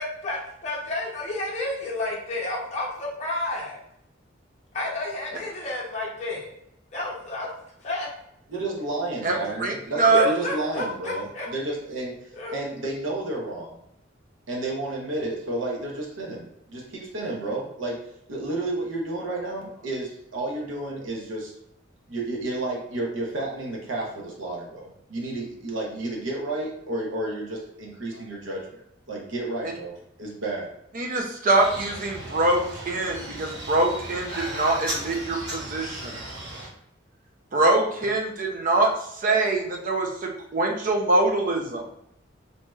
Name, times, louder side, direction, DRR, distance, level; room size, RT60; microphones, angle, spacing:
voice 1, 0.0-3.8 4.7-6.5 6.9-7.5 7.8-8.1 10.1-11.5 12.3-12.5, left 2 dB, 35° left, -4 dB, 0.6 m, -30 dB
voice 2, 8.5-12.1 12.5-13.7 14.5-18.0 18.3-21.5 22.1-28.6 29.1-30.7, right 2 dB, 90° right, -2 dB, 0.8 m, -31 dB
voice 3, 9.6-10.2 30.9-36.2 37.5-38.9 39.2-41.8, right 2 dB, 45° right, 1 dB, 0.5 m, -23 dB
sound 1, 31.5-36.7, right 1 dB, 65° right, 0.9 m, -36 dB
3.1 x 2.7 x 2.3 m, 0.76 s
head